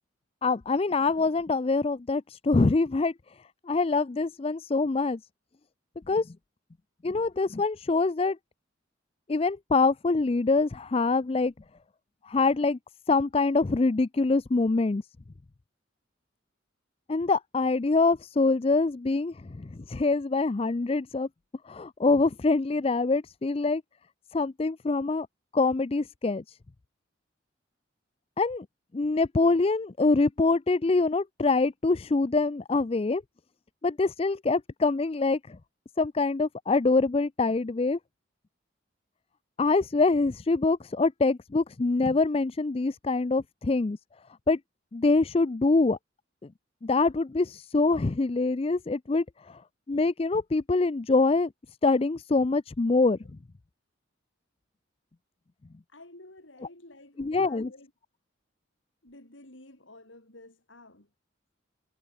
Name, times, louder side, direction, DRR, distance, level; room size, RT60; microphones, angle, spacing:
voice 1, 0.4-3.1 3.7-5.2 6.1-6.3 7.0-8.4 9.3-11.5 12.3-12.8 13.1-15.0 17.1-21.3 21.7-23.8 24.3-25.3 25.5-26.6 28.4-28.7 28.9-33.2 33.8-35.6 36.0-38.0 39.6-44.0 44.5-44.6 44.9-46.0 46.8-49.6 49.9-51.5 51.8-53.2 57.2-57.7, left 3 dB, 30° left, 0.4 m, -25 dB
voice 2, 55.9-57.9 59.0-61.1, left 2 dB, 75° left, 4.8 m, -51 dB
head